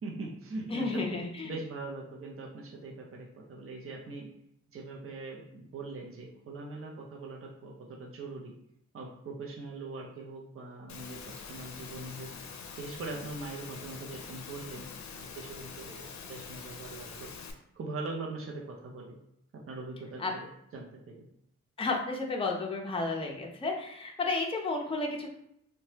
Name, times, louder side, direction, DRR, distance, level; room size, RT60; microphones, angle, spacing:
voice 1, 0.0-1.2 1.4-4.3 4.7-8.5 8.9-12.3 12.8-14.9 15.1-17.3 17.7-19.2 19.5-21.1, right 3 dB, 50° right, -1 dB, 0.6 m, -41 dB
voice 2, 0.7-1.5 20.2-20.3 21.8-25.3, left 3 dB, 20° left, 0 dB, 0.5 m, -32 dB
Engine / Mechanisms, 10.9-17.5, left 5 dB, 70° left, 0.5 m, -45 dB
2.8 x 2.2 x 3.2 m, 0.74 s
cardioid pair, 75°, 29 cm